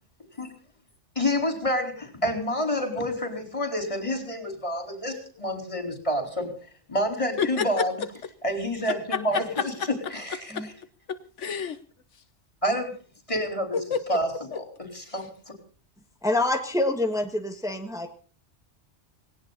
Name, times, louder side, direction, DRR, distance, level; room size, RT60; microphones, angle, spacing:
voice 1, 1.2-6.5 6.9-8.0 8.4-10.7 12.6-12.9 13.3-15.3, equal, 25° left, 5 dB, 4.3 m, -28 dB
voice 2, 8.9-9.4 10.5-10.6 11.1-11.8 13.9-14.2, left 7 dB, 80° left, 11 dB, 1.4 m, -29 dB
voice 3, 16.2-18.1, left 2 dB, 5° right, 4 dB, 1.7 m, -26 dB
19.0 x 17.5 x 4.1 m, 0.40 s
omnidirectional pair, 1.2 m